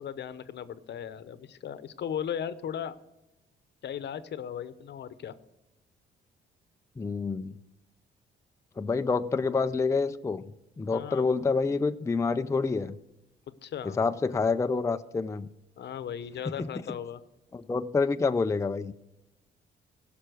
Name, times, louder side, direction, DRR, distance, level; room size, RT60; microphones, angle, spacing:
voice 1, 0.0-3.0 3.8-5.3 10.9-11.3 13.6-14.0 15.8-17.2, left 9 dB, 60° left, 13 dB, 0.9 m, -37 dB
voice 2, 7.0-7.5 8.8-10.4 10.8-13.0 14.0-15.5 16.5-16.7 17.5-18.9, left 4 dB, 15° left, 9 dB, 0.4 m, -27 dB
16.5 x 6.0 x 6.3 m, 0.94 s
cardioid pair, 90°, 20 cm